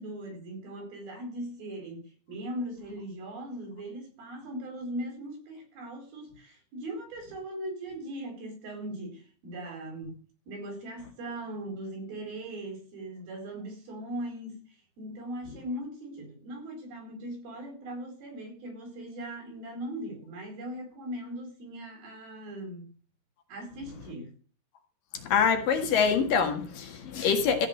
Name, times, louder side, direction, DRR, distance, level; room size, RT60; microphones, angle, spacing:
voice 1, 0.0-10.2 10.5-14.6 15.0-22.9 23.5-24.3, right 1 dB, 70° right, 6.4 m, -39 dB
voice 2, 25.2-27.7, left 6 dB, 65° left, 3.3 m, -25 dB
15.0 x 6.4 x 8.0 m
omnidirectional pair, 4.4 m